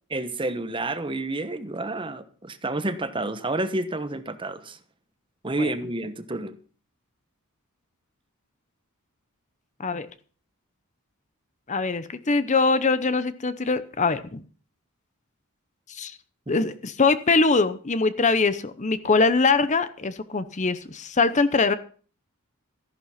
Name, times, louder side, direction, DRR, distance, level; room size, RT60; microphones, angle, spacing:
voice 1, 0.1-4.8 5.4-6.5 16.5-16.6, right 2 dB, 25° right, 11 dB, 1.1 m, -29 dB
voice 2, 11.7-14.4 15.9-16.2 16.5-21.7, left 4 dB, 35° left, 13 dB, 0.8 m, -23 dB
14.5 x 11.0 x 5.7 m, 0.42 s
head